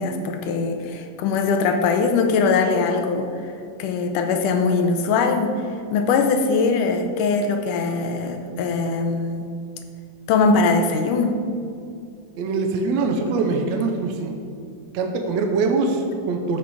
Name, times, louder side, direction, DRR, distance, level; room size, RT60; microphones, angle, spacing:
voice 1, 0.0-3.3 3.8-5.6 5.9-9.5 10.3-11.4, left 4 dB, 85° left, 6 dB, 2.4 m, -21 dB
voice 2, 12.4-14.3 14.9-16.6, right 3 dB, 70° right, 4 dB, 1.9 m, -23 dB
13.5 x 5.9 x 4.8 m, 2.3 s
omnidirectional pair, 3.6 m